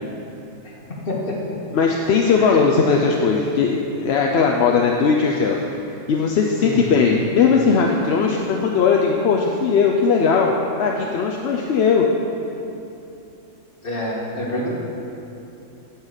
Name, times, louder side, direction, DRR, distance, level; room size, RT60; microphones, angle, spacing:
voice 1, 1.1-1.4 2.4-2.6 6.6-7.0 13.8-14.7, left 1 dB, 45° left, -4 dB, 1.9 m, -27 dB
voice 2, 1.7-5.6 6.1-10.5 10.8-12.1, left 5 dB, 60° left, 0 dB, 0.8 m, -18 dB
9.3 x 5.7 x 8.0 m, 2.9 s
omnidirectional pair, 1.4 m